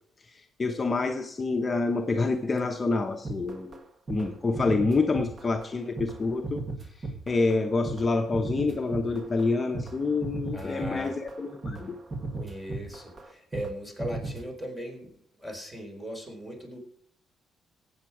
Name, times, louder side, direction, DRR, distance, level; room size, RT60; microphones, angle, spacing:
voice 1, 0.3-3.8 4.1-6.6 7.0-12.0, left 3 dB, 30° left, 4 dB, 1.0 m, -27 dB
sound 1, 3.3-3.8 4.1-4.3 4.5-5.7 6.0-13.7 14.0-14.5, right 2 dB, 35° right, 1.8 m, -36 dB
voice 2, 10.5-11.2 12.4-16.8, equal, 10° right, 2 dB, 4.3 m, -38 dB
17.5 x 8.0 x 4.9 m, 0.66 s
cardioid pair, 90°, 0 cm